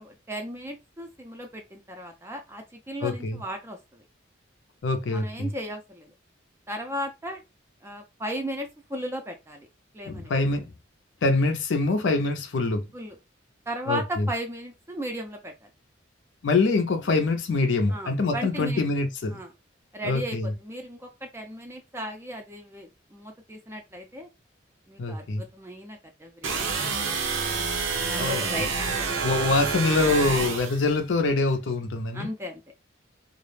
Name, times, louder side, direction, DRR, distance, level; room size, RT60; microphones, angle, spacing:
voice 1, 0.0-4.0 5.1-6.1 6.7-7.4 7.8-9.7 9.9-10.3 12.9-13.2 13.7-15.7 17.9-18.8 19.3-19.5 19.9-24.3 24.9-27.1 28.1-29.6 32.1-32.6, equal, 15° right, 0.4 m, -36 dB
voice 2, 3.0-3.4 4.8-5.3 10.1-10.6 11.2-12.8 13.9-14.3 16.4-19.4 20.0-20.5 25.0-25.4 28.2-28.4 29.2-32.3, left 3 dB, 70° left, 0.5 m, -24 dB
sound 1, 26.4-30.8, right 5 dB, 80° right, 0.6 m, -28 dB
2.3 x 2.0 x 3.1 m
head